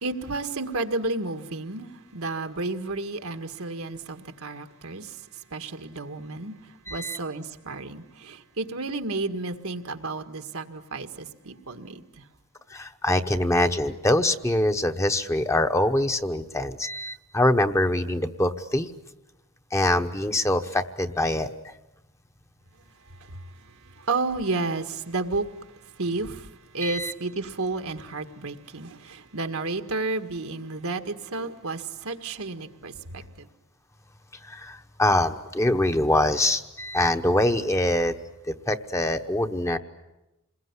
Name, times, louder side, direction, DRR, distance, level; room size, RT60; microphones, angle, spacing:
voice 1, 0.0-12.2 23.2-25.5 25.8-33.5, right 3 dB, 80° right, 1.8 m, -32 dB
voice 2, 6.9-7.2 12.7-18.9 19.7-21.5 26.8-27.1 34.4-38.1 38.5-39.8, left 1 dB, 15° left, 1.0 m, -24 dB
27.5 x 21.5 x 9.7 m
head